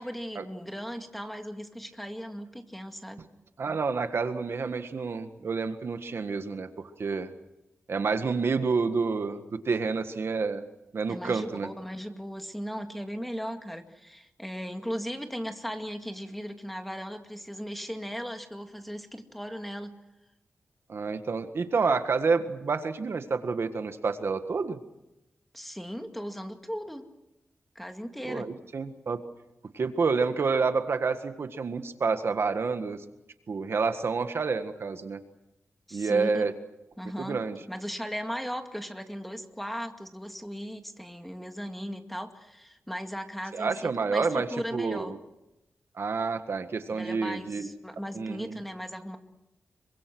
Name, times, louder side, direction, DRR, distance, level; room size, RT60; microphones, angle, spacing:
voice 1, 0.0-3.2 11.1-20.0 25.5-27.1 27.8-28.5 35.9-36.5 37.0-45.1 46.9-49.2, equal, 5° left, 5 dB, 2.2 m, -37 dB
voice 2, 3.6-7.3 7.9-10.6 10.9-11.7 20.9-24.8 28.3-29.2 29.7-33.0 33.5-35.2 35.9-36.5 37.2-37.6 43.5-44.5 44.7-45.2 46.0-47.7 48.1-48.6, right 4 dB, 60° right, 8 dB, 1.7 m, -29 dB
27.0 x 24.5 x 6.3 m, 0.91 s
wide cardioid pair, 125°, 5 cm